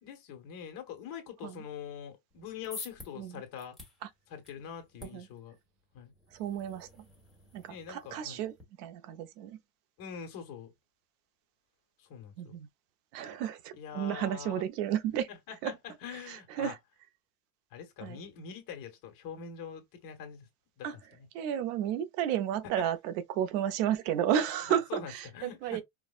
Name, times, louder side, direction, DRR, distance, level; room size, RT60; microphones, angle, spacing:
voice 1, 0.0-3.8 4.3-5.6 5.9-6.1 7.7-8.5 10.0-10.7 12.0-12.5 13.8-14.6 15.3-16.7 17.7-20.5 20.8-20.9 21.1-21.3 24.7-25.8, left 8 dB, 45° left, 1.3 m, -44 dB
sound 1, 2.3-8.6, left 3 dB, ahead, 1.2 m, -51 dB
voice 2, 6.3-6.9 7.5-8.5 8.8-9.6 12.4-12.7 13.1-15.3 15.6-15.7 16.1-16.8 18.0-18.2 20.8-21.0 21.3-25.8, right 10 dB, 85° right, 0.8 m, -32 dB
4.6 x 2.1 x 2.4 m
cardioid pair, 150°, 45 cm